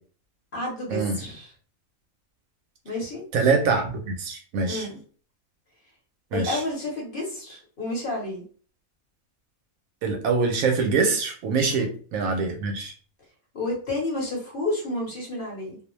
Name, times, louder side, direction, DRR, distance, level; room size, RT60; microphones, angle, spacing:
voice 1, 0.5-1.5 2.8-3.2 4.7-5.0 6.3-8.4 11.8-11.9 13.5-15.8, left 2 dB, 45° left, -3 dB, 0.9 m, -30 dB
voice 2, 3.3-4.9 6.3-6.6 10.0-12.9, right 4 dB, 80° right, 4 dB, 1.0 m, -24 dB
2.5 x 2.1 x 3.0 m, 0.41 s
omnidirectional pair, 1.5 m